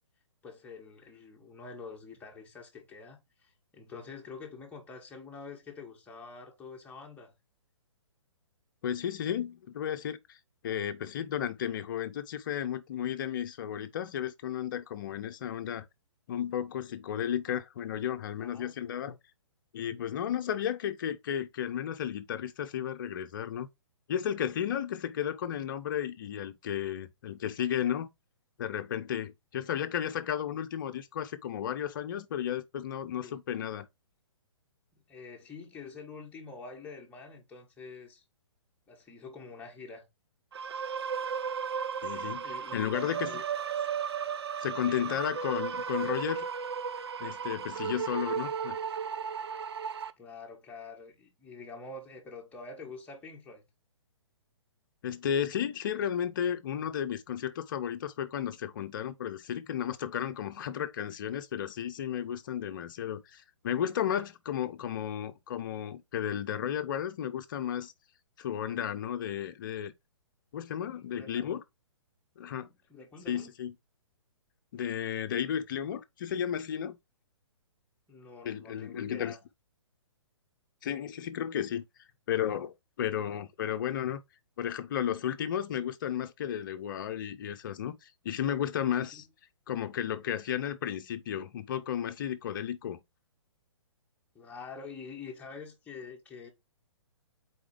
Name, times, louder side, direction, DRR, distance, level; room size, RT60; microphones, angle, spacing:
voice 1, 0.4-7.3 18.4-18.7 33.2-33.4 34.9-38.2 38.9-40.1 42.4-43.4 44.9-45.2 50.2-53.7 70.9-71.4 72.6-73.5 78.1-79.4 89.1-89.2 94.3-96.5, left 4 dB, 10° left, 1.5 m, -46 dB
voice 2, 8.8-10.4 10.6-15.9 16.3-19.2 19.7-23.7 24.1-28.1 28.6-33.9 42.0-43.4 44.6-46.5 47.2-48.8 55.0-67.9 68.4-69.9 70.5-71.6 72.4-72.7 73.3-73.7 74.7-77.0 78.4-79.3 80.8-81.8 82.3-84.2 84.6-89.2 89.7-93.0, left 9 dB, 40° left, 0.8 m, -33 dB
sound 1, 40.5-50.1, right 7 dB, 55° right, 0.6 m, -35 dB
4.9 x 4.4 x 4.9 m
figure-of-eight pair, 125°, 16 cm